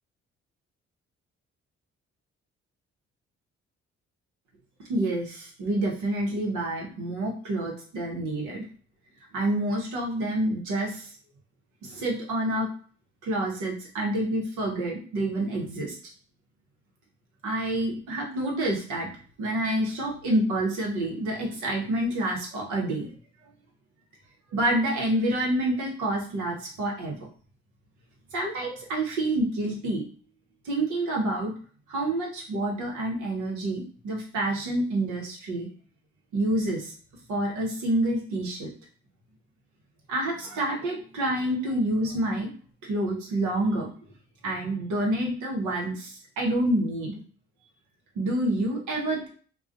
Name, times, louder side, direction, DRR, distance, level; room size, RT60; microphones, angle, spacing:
voice 1, 4.9-8.6 9.3-11.1 11.8-12.7 13.2-16.0 17.4-19.1 19.4-23.1 24.5-27.2 28.3-30.0 30.6-31.5 31.9-35.7 36.3-36.9 37.3-38.7 40.1-42.5 42.8-43.9 44.4-47.1 48.2-49.3, right 1 dB, 75° right, -1 dB, 0.9 m, -28 dB
2.3 x 2.2 x 2.5 m, 0.43 s
hypercardioid pair, 50°, 30 cm